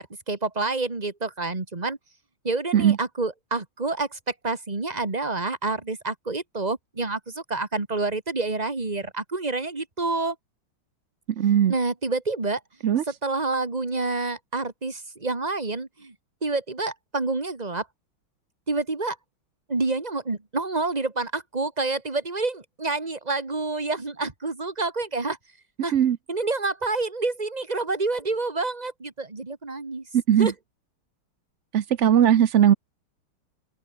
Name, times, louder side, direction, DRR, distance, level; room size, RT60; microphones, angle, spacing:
voice 1, 0.0-2.0 2.4-10.4 11.7-12.6 13.2-16.1 16.4-17.9 18.7-19.2 19.7-25.4 25.8-25.9 26.3-30.1 30.4-30.5, right 3 dB, 20° right, 2.2 m, -28 dB
voice 2, 11.3-11.7 12.8-13.0 25.9-26.2 30.1-30.5 31.7-32.7, right 9 dB, 70° right, 0.7 m, -19 dB
open air
omnidirectional pair, 2.3 m